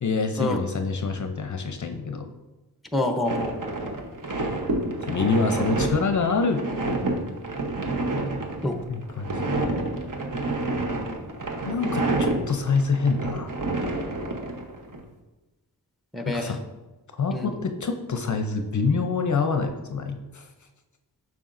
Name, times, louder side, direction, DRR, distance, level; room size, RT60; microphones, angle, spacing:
voice 1, 0.0-2.3 5.1-6.6 8.9-9.4 11.7-13.5 16.3-16.6 17.2-20.4, left 4 dB, 45° left, 6 dB, 0.6 m, -26 dB
voice 2, 2.9-3.9 8.6-8.8 16.1-16.6 17.3-17.6, left 1 dB, ahead, 5 dB, 0.6 m, -27 dB
sound 1, 3.3-15.0, right 2 dB, 50° right, 1.0 m, -29 dB
7.0 x 6.0 x 2.5 m, 1.1 s
wide cardioid pair, 85°, 40 cm